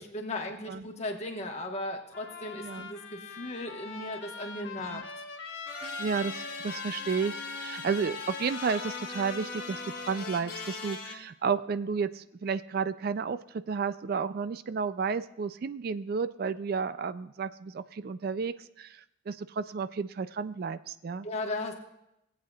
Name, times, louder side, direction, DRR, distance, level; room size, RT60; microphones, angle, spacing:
voice 1, 0.0-5.0 21.2-21.7, left 1 dB, 35° left, 2 dB, 1.2 m, -36 dB
Trumpet, 2.1-10.9, left 5 dB, 75° left, 1.2 m, -43 dB
sound 1, 5.7-11.1, left 4 dB, 50° left, 1.5 m, -40 dB
voice 2, 6.0-21.3, right 5 dB, 50° right, 14 dB, 0.3 m, -32 dB
18.5 x 8.4 x 2.3 m, 0.85 s
head